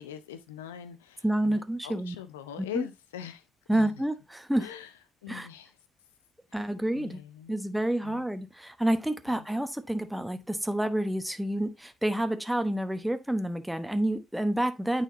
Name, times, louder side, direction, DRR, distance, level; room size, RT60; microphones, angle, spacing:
voice 1, 0.0-3.4 3.7-3.9 4.6-4.9 5.2-5.7 6.5-6.7 6.9-7.6 8.0-8.2 9.3-9.5, left 9 dB, 85° left, 0.5 m, -42 dB
voice 2, 1.2-2.2 2.6-2.9 3.7-4.7 5.3-5.5 6.5-7.2 7.5-15.0, right 1 dB, 5° right, 0.9 m, -29 dB
9.1 x 4.2 x 2.7 m
hypercardioid pair, 50°, 0 cm